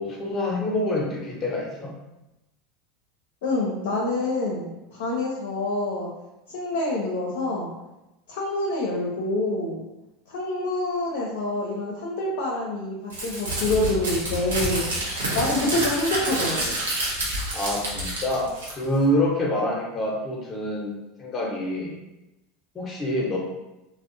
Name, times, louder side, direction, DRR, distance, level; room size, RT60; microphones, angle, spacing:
voice 1, 0.0-1.9 17.5-21.9 22.7-23.4, left 1 dB, 25° left, -2 dB, 0.7 m, -26 dB
voice 2, 3.4-6.1 6.5-7.7 8.3-9.8 10.3-14.8 15.3-16.7, left 2 dB, 65° left, -3 dB, 0.5 m, -26 dB
Crumpling crinkling, 13.1-19.0, right 1 dB, 80° right, 0.7 m, -28 dB
2.5 x 2.1 x 2.5 m, 0.96 s
hypercardioid pair, 80°, 0 cm